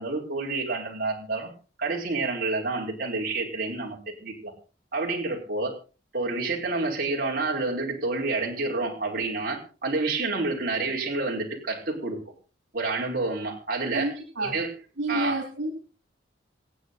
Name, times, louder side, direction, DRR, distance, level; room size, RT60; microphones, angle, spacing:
voice 1, 0.0-1.5 1.8-4.5 4.9-5.7 6.1-12.2 12.7-14.1 14.4-14.7 15.1-15.4, right 3 dB, 50° right, -1 dB, 5.2 m, -29 dB
voice 2, 13.9-14.5 15.0-15.7, right 2 dB, 75° right, 4 dB, 4.1 m, -29 dB
26.5 x 9.2 x 4.1 m, 0.35 s
head